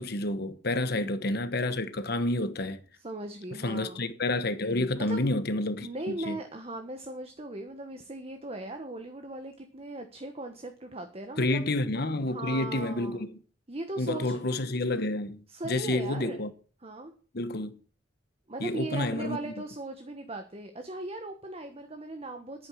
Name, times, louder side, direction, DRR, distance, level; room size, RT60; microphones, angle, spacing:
voice 1, 0.0-2.8 3.6-6.4 11.4-13.3 14.0-16.5 17.3-17.7 18.6-19.5, left 2 dB, 55° left, 1.3 m, -29 dB
voice 2, 0.9-1.4 3.0-4.0 5.0-5.2 5.8-11.7 12.3-13.2 13.7-14.4 15.5-16.4 16.8-17.1 18.5-22.7, right 2 dB, 30° right, 1.3 m, -38 dB
11.0 x 9.0 x 6.4 m
head